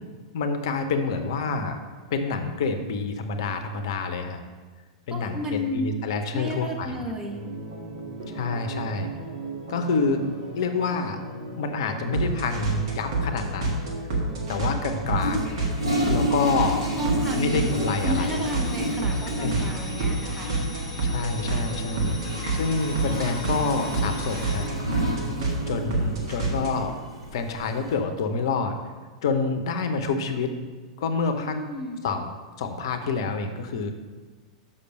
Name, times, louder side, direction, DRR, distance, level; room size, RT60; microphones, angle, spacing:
voice 1, 0.3-1.8 2.1-4.4 5.1-7.0 8.3-9.1 9.7-10.2 10.6-11.2 11.5-13.8 14.5-15.4 16.1-16.8 17.3-18.4 19.4-19.6 21.0-22.2 22.5-24.7 25.7-26.9 27.3-28.8 29.2-30.5 31.0-31.6 32.0-33.9, left 4 dB, 55° left, 7 dB, 0.7 m, -27 dB
voice 2, 5.1-5.9 6.3-7.4 17.0-20.5 31.4-32.0, equal, 15° right, 0 dB, 1.3 m, -32 dB
sound 1, 7.3-26.9, right 2 dB, 55° right, 1.7 m, -30 dB
Toilet flush, 15.1-27.9, equal, 80° right, 2.4 m, -31 dB
sound 2, 17.2-24.7, left 3 dB, 10° left, 1.5 m, -43 dB
6.7 x 5.6 x 5.2 m, 1.4 s
figure-of-eight pair, 95°, 3 cm